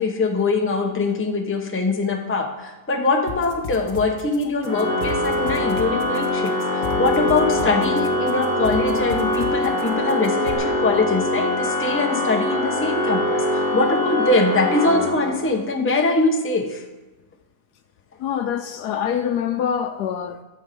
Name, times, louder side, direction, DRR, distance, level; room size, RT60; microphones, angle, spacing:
voice 1, 0.0-16.8, left 3 dB, 10° left, 0.8 m, -22 dB
sound 1, 3.3-10.5, left 5 dB, 60° left, 1.8 m, -35 dB
Organ, 4.6-15.6, left 1 dB, 5° right, 4.4 m, -23 dB
voice 2, 18.2-20.4, left 8 dB, 80° left, 1.2 m, -25 dB
12.0 x 7.2 x 5.3 m
omnidirectional pair, 1.7 m